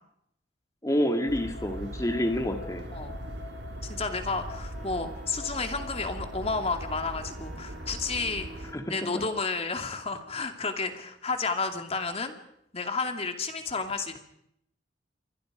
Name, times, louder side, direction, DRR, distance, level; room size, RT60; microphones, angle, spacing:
voice 1, 0.8-2.9 8.7-9.3, equal, 20° left, 5 dB, 1.9 m, -28 dB
sound 1, 1.1-7.0, left 7 dB, 70° left, 3.2 m, -49 dB
sound 2, 1.3-8.7, right 1 dB, 65° right, 1.8 m, -40 dB
voice 2, 3.9-12.4 12.7-14.2, left 4 dB, 35° left, 5 dB, 2.5 m, -31 dB
Wind instrument woodwind instrument, 4.7-10.6, right 1 dB, ahead, 4.2 m, -52 dB
27.5 x 24.0 x 5.1 m, 0.74 s
head